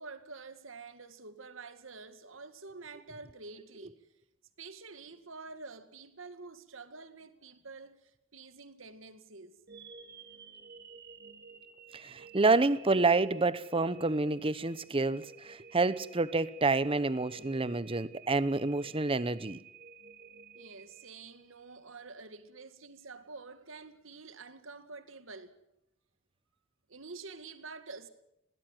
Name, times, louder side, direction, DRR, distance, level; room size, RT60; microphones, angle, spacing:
voice 1, 0.0-4.1 4.6-9.6 20.5-25.6 26.9-28.1, right 4 dB, 80° right, 2.0 m, -48 dB
sound 1, 9.7-21.8, right 5 dB, 55° right, 2.2 m, -53 dB
voice 2, 11.9-19.6, right 3 dB, 30° right, 0.9 m, -28 dB
21.0 x 18.0 x 7.8 m
head